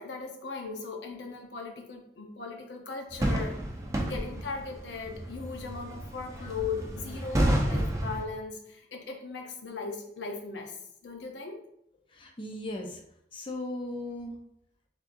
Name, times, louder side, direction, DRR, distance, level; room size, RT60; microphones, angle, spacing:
voice 1, 0.0-3.6 4.0-11.6, left 4 dB, 85° left, 2 dB, 0.8 m, -38 dB
sound 1, 3.1-8.2, right 1 dB, 15° right, 0.5 m, -30 dB
voice 2, 12.1-13.0 13.3-14.3, left 1 dB, 30° left, 1 dB, 0.5 m, -37 dB
4.2 x 3.5 x 2.5 m, 0.75 s
head